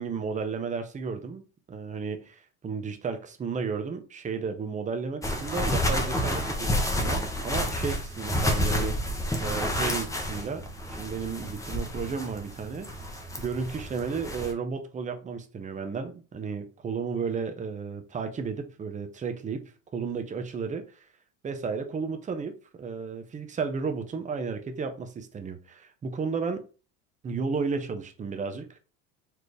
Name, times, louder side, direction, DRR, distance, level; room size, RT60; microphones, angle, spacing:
voice 1, 0.0-19.6 19.9-21.1 21.4-26.6 27.2-28.8, right 5 dB, 20° right, 0.9 m, -33 dB
sound 1, 5.2-14.5, left 1 dB, 10° left, 1.0 m, -30 dB
4.3 x 3.2 x 3.3 m
supercardioid pair, 110°, 35 cm